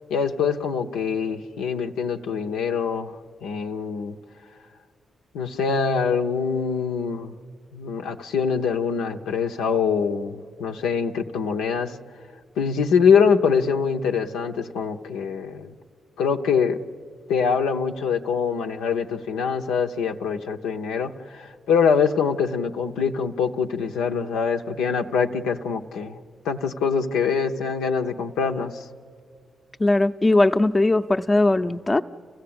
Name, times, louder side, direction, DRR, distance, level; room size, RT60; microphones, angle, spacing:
voice 1, 0.1-3.1 3.4-4.2 5.3-7.3 7.7-12.0 12.6-15.7 16.2-16.8 17.3-26.2 26.4-28.9, left 6 dB, 85° left, 4 dB, 0.7 m, -24 dB
voice 2, 29.8-32.0, left 2 dB, 30° left, 7 dB, 0.7 m, -19 dB
29.0 x 15.5 x 8.7 m, 2.4 s
supercardioid pair, 45°, 0 cm